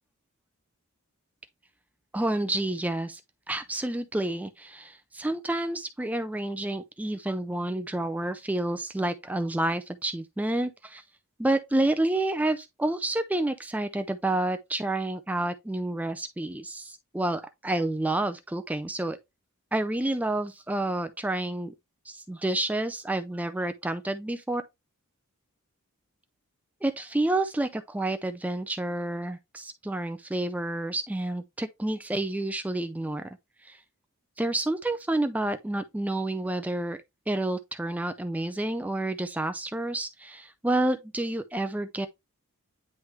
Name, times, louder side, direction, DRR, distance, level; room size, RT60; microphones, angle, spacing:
voice 1, 2.1-3.2 3.5-11.0 11.4-19.2 19.7-21.7 22.1-24.6 26.8-33.3 33.6-33.8 34.4-37.0 37.3-42.1, right 1 dB, 5° right, 0.3 m, -29 dB
9.6 x 3.3 x 3.1 m
head